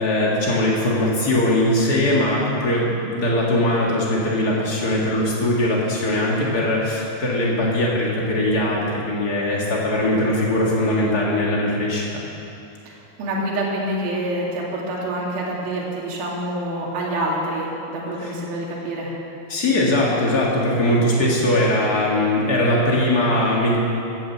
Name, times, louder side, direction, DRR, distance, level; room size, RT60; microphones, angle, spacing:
voice 1, 0.0-12.2 19.5-23.8, left 1 dB, 70° left, -4 dB, 0.9 m, -20 dB
voice 2, 12.8-19.1, right 1 dB, 60° right, -4 dB, 4.0 m, -27 dB
16.0 x 10.5 x 7.3 m, 2.7 s
omnidirectional pair, 5.2 m